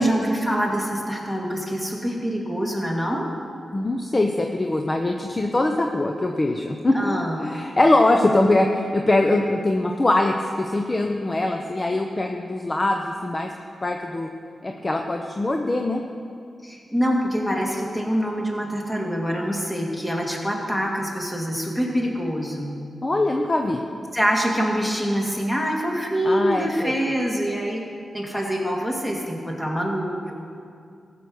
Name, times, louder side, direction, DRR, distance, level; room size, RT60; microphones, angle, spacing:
voice 1, 0.0-3.3 6.9-7.4 16.6-22.7 24.1-27.8 28.1-30.3, equal, 15° left, -1 dB, 2.4 m, -25 dB
voice 2, 3.7-13.5 13.8-14.3 14.6-16.0 23.0-23.8 26.2-26.9, left 2 dB, 30° left, 3 dB, 0.8 m, -22 dB
14.5 x 6.9 x 6.3 m, 2.4 s
cardioid pair, 65°, 0 cm